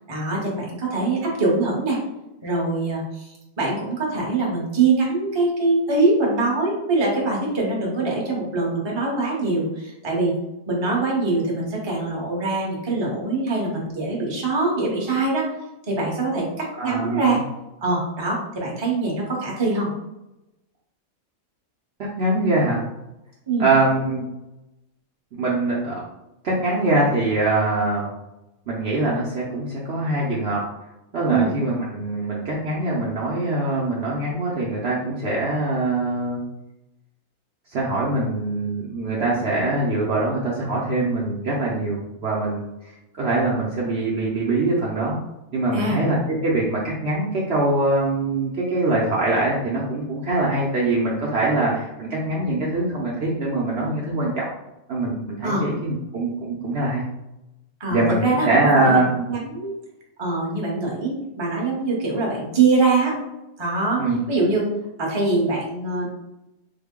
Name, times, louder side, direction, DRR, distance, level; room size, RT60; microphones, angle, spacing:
voice 1, 0.1-2.0 2.4-10.4 10.7-15.5 15.9-17.4 17.8-19.9 23.5-23.7 31.3-31.5 45.7-46.0 55.4-55.6 57.8-59.0 59.3-59.7 60.2-63.2 63.6-64.7 65.0-66.1, right 3 dB, 25° right, -3 dB, 0.7 m, -23 dB
voice 2, 16.7-17.4 22.0-22.8 23.6-24.3 25.4-26.0 26.4-28.1 28.7-30.6 31.1-36.4 37.7-45.2 45.5-46.2 46.4-54.5 54.9-57.0 57.9-59.1 64.0-64.2, right 2 dB, 60° right, -5 dB, 0.8 m, -23 dB
3.6 x 2.1 x 3.6 m, 0.92 s
omnidirectional pair, 1.5 m